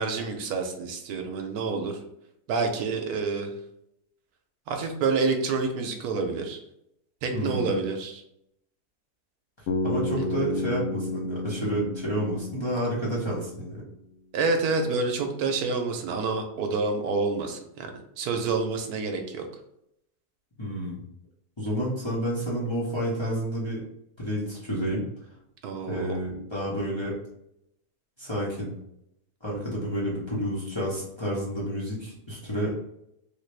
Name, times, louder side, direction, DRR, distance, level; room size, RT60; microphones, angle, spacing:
voice 1, 0.0-2.0 2.5-3.5 4.7-6.6 7.2-8.2 10.2-10.5 14.3-17.9 18.2-19.5 25.6-26.2, right 4 dB, 75° right, 4 dB, 1.1 m, -28 dB
voice 2, 7.3-7.7 9.8-13.8 20.6-21.0 21.6-23.8 24.2-25.0 25.9-27.1 28.2-28.7 29.4-32.8, equal, 20° left, -7 dB, 0.8 m, -30 dB
Bass guitar, 9.7-13.8, left 2 dB, 65° left, 0.8 m, -32 dB
3.5 x 2.4 x 3.2 m, 0.78 s
omnidirectional pair, 1.7 m